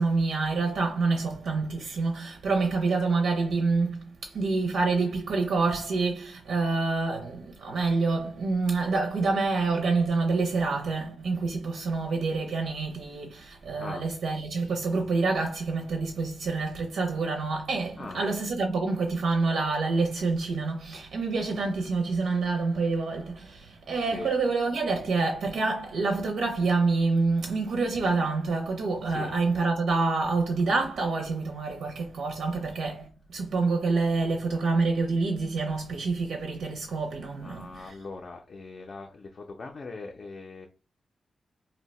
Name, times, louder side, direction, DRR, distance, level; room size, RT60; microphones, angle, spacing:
voice 1, 0.0-38.0, right 3 dB, 85° right, 0.5 m, -27 dB
voice 2, 37.4-40.7, left 3 dB, 45° left, 0.4 m, -40 dB
2.7 x 2.1 x 4.1 m
wide cardioid pair, 135°, 0 cm